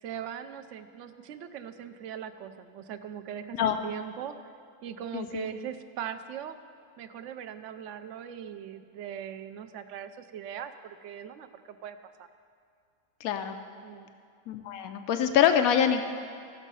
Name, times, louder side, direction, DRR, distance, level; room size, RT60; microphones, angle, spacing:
voice 1, 0.0-4.5 4.8-6.6 7.0-12.3 13.8-14.1, right 9 dB, 65° right, 9 dB, 0.9 m, -40 dB
voice 2, 5.1-5.5 13.2-13.6 14.5-16.0, left 9 dB, 85° left, 7 dB, 1.1 m, -25 dB
15.5 x 6.3 x 5.4 m, 2.4 s
omnidirectional pair, 1.4 m